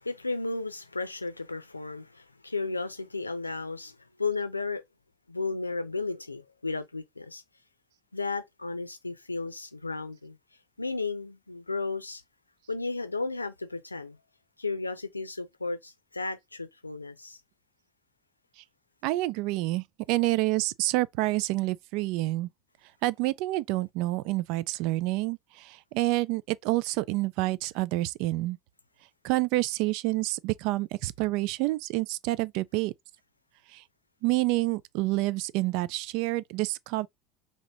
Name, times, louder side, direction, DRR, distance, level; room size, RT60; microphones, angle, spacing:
voice 1, 0.0-4.8 5.3-7.4 8.1-10.4 10.8-12.2 12.7-14.2 14.6-17.4, left 3 dB, 85° left, 0.5 m, -34 dB
voice 2, 19.0-22.5 23.0-28.6 29.2-32.9 33.7-33.8 34.2-37.1, right 19 dB, 55° right, 0.3 m, -28 dB
2.9 x 2.8 x 4.4 m
figure-of-eight pair, 70°, 0 cm